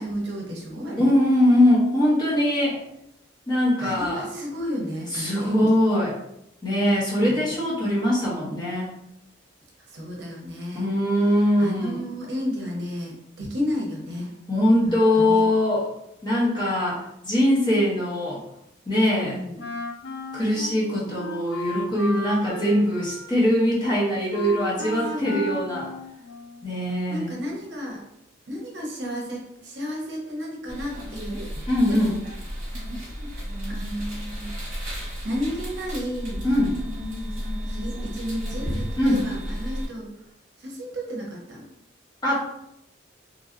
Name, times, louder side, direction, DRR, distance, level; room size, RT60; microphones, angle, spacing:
voice 1, 0.0-1.1 3.8-5.7 7.3-7.5 9.9-10.9 11.6-14.3 14.8-15.4 19.2-19.6 25.1-25.5 27.1-28.0 28.5-31.5 31.9-32.2 33.7-34.5 35.2-36.4 37.6-40.1 40.6-41.6, equal, 65° right, -1 dB, 0.7 m, -32 dB
voice 2, 1.0-2.8 3.5-4.3 5.1-6.1 6.6-8.9 10.7-12.0 14.5-15.9 16.2-18.4 18.9-19.4 20.3-25.9 26.6-27.4 31.7-32.1 36.4-36.7 39.0-39.2 42.2-42.3, left 1 dB, 20° left, -6 dB, 0.8 m, -22 dB
Wind instrument woodwind instrument, 19.6-26.8, left 1 dB, 65° left, 0.4 m, -34 dB
sound 1, 30.7-39.9, equal, 40° right, 1.1 m, -33 dB
2.9 x 2.6 x 2.5 m, 0.80 s
head